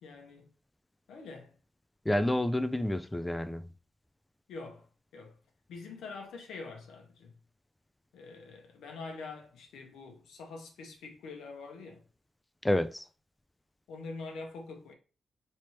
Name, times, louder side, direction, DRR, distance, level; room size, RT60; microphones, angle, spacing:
voice 1, 0.0-0.5 1.1-1.5 4.5-4.9 5.1-5.4 5.7-7.4 8.1-12.0 13.9-14.9, left 3 dB, 85° left, 0.8 m, -45 dB
voice 2, 2.1-3.6 12.6-13.1, left 1 dB, 10° left, 0.4 m, -29 dB
3.3 x 2.9 x 3.0 m
cardioid pair, 60°, 0 cm